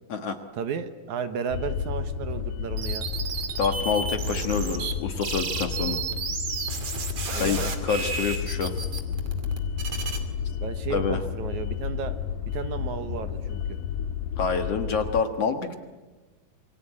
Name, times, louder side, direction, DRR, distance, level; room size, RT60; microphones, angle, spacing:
voice 1, 0.5-3.1 7.3-7.7 10.6-12.1 12.5-13.8, right 6 dB, 65° right, 9 dB, 2.4 m, -33 dB
sound 1, 1.5-15.2, left 8 dB, 75° left, 2.8 m, -32 dB
sound 2, 2.8-4.9 5.2-10.2, right 5 dB, 45° right, 3.3 m, -32 dB
voice 2, 3.6-6.0 7.3-8.7 10.9-11.2 14.4-15.7, left 5 dB, 55° left, 7 dB, 2.1 m, -27 dB
27.5 x 23.5 x 8.7 m, 1.2 s
omnidirectional pair, 3.9 m